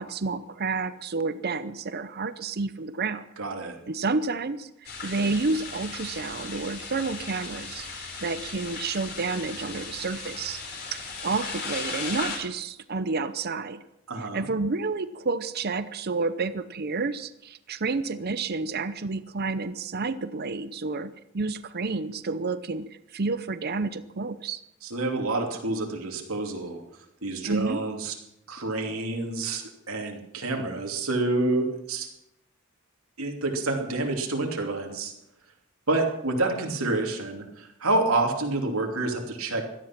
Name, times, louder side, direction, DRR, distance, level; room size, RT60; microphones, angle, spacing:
voice 1, 0.0-3.3 3.9-7.9 8.2-10.6 10.9-13.8 14.2-24.6 27.4-27.8, right 3 dB, 50° right, 12 dB, 0.7 m, -30 dB
voice 2, 3.4-3.8 14.1-14.5 24.8-26.8 27.2-28.1 28.5-32.1 33.2-35.1 35.9-39.7, right 2 dB, 90° right, 2 dB, 2.9 m, -28 dB
sound 1, 4.8-12.4, left 4 dB, 50° left, 4.1 m, -37 dB
17.0 x 13.0 x 6.0 m, 0.83 s
head